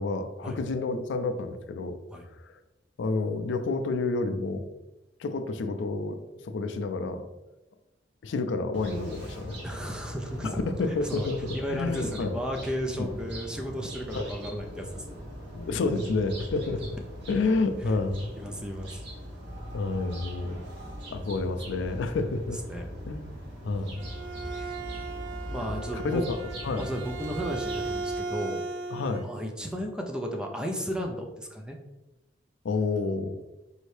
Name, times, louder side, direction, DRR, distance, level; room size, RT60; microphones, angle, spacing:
voice 1, 0.0-2.0 2.4-2.5 3.0-4.7 5.2-6.2 6.4-7.3 8.2-9.6 10.4-12.4 13.0-13.1 14.1-14.3 15.5-16.8 17.3-18.3 19.7-20.6 21.1-22.6 23.1-23.4 23.6-24.1 25.6-26.9 28.9-29.3 32.6-33.4, left 3 dB, 75° left, 8 dB, 0.4 m, -29 dB
sound 1, 8.7-28.0, equal, 65° right, 0.9 m, -41 dB
voice 2, 9.6-11.3 11.5-15.3 18.3-19.0 22.7-22.9 24.5-24.8 25.5-26.2 26.8-28.6 29.2-31.8, equal, 5° right, 2 dB, 0.3 m, -34 dB
Bowed string instrument, 23.8-29.3, right 4 dB, 85° right, 0.5 m, -37 dB
4.2 x 2.7 x 3.2 m, 1.0 s
head